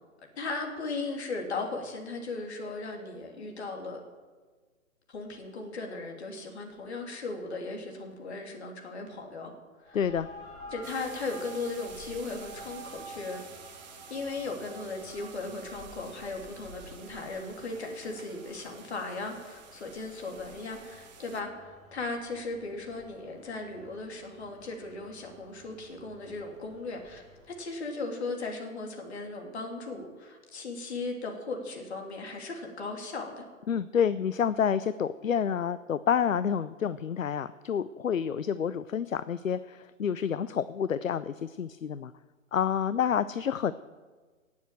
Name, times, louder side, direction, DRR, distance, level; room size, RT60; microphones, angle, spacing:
voice 1, 0.2-4.0 5.1-9.5 9.8-10.0 10.7-13.8 14.1-33.4, left 3 dB, 50° left, 2 dB, 3.1 m, -37 dB
sound 1, 9.8-27.7, equal, 25° left, 4.2 m, -50 dB
voice 2, 9.9-10.3 33.7-42.1 42.5-43.7, left 8 dB, 70° left, 15 dB, 0.6 m, -28 dB
sound 2, 10.8-21.4, right 7 dB, 30° right, 1.3 m, -52 dB
18.0 x 7.2 x 7.6 m, 1.4 s
figure-of-eight pair, 130°, 41 cm